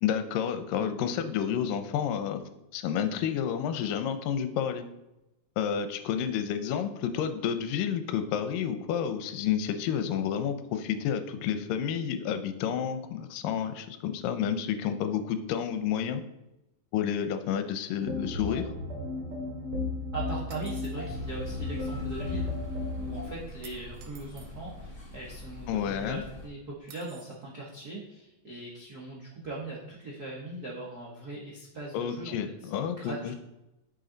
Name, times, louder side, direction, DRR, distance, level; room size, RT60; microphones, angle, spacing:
voice 1, 0.0-2.4 2.7-4.9 5.6-16.2 16.9-18.6 25.7-26.2 31.9-33.4, left 8 dB, 80° left, 9 dB, 2.3 m, -30 dB
sound 1, 18.0-23.2, left 2 dB, 45° right, 2.9 m, -34 dB
voice 2, 20.1-22.5 23.0-32.7 33.0-33.2, right 2 dB, 60° right, -5 dB, 1.0 m, -40 dB
sound 2, 20.5-21.0 23.6-24.5 26.9-27.4, right 8 dB, 80° right, 2.5 m, -52 dB
sound 3, 20.9-26.5, left 1 dB, 30° left, 1.9 m, -44 dB
9.3 x 6.5 x 3.9 m, 0.94 s
omnidirectional pair, 3.9 m